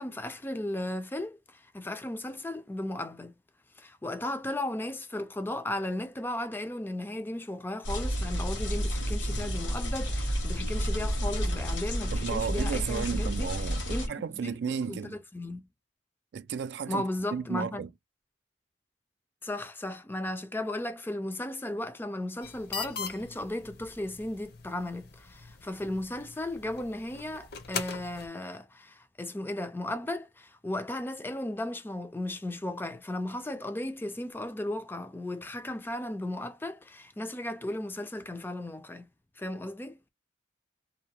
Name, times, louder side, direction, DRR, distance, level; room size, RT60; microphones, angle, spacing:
voice 1, 0.0-3.3 3.8-15.7 16.9-17.8 19.4-39.1 39.4-40.0, left 1 dB, 10° left, 0.4 m, -35 dB
sound 1, 7.8-14.1, equal, 80° left, 1.3 m, -30 dB
voice 2, 12.1-15.2 16.3-17.0 17.3-17.9, right 6 dB, 60° right, 0.3 m, -33 dB
sound 2, 22.4-28.3, left 6 dB, 55° left, 0.7 m, -41 dB
2.7 x 2.1 x 2.8 m
head